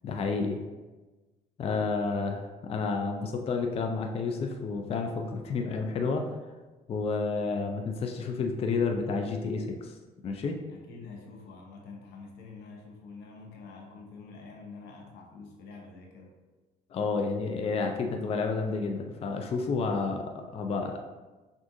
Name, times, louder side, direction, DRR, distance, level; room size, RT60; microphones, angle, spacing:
voice 1, 0.0-0.6 1.6-6.2 6.9-9.9 10.2-10.6 16.9-21.0, left 4 dB, 35° left, 3 dB, 0.4 m, -30 dB
voice 2, 10.7-16.3, left 4 dB, 80° left, 1 dB, 0.8 m, -47 dB
6.1 x 2.5 x 2.6 m, 1.2 s
cardioid pair, 110°, 17 cm